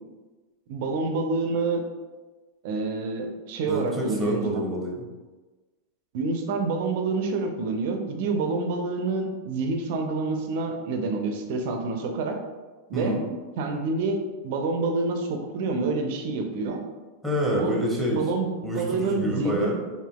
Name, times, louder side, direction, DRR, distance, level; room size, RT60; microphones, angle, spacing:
voice 1, 0.7-1.8 2.6-4.6 6.1-12.4 12.9-13.2 13.6-16.8 17.6-17.8 18.1-19.7, right 3 dB, 50° right, 4 dB, 0.5 m, -27 dB
voice 2, 3.7-5.0 12.9-13.3 17.2-18.2 18.6-19.7, equal, ahead, -3 dB, 0.9 m, -27 dB
4.9 x 2.6 x 2.2 m, 1.3 s
figure-of-eight pair, 90°, 0 cm